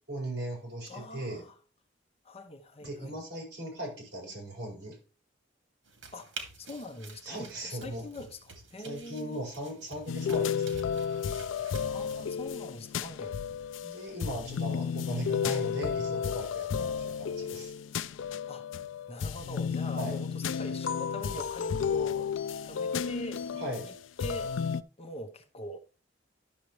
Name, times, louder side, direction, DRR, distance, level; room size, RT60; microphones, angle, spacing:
voice 1, 0.1-1.4 2.8-5.0 7.2-8.0 8.8-10.9 11.6-11.7 13.8-17.7 20.0-20.2 23.5-23.9, right 1 dB, 60° right, 5.0 m, -38 dB
voice 2, 0.9-1.6 2.2-3.2 6.1-6.3 6.6-9.5 11.9-13.3 16.8-17.0 18.5-18.7 19.1-22.3 22.6-23.4 23.8-24.5 25.0-25.8, equal, 35° left, 0.9 m, -43 dB
sound 1, 5.8-12.5, right 4 dB, 85° right, 2.2 m, -49 dB
sound 2, 10.1-24.8, left 7 dB, 80° left, 0.4 m, -32 dB
11.5 x 6.6 x 3.1 m
head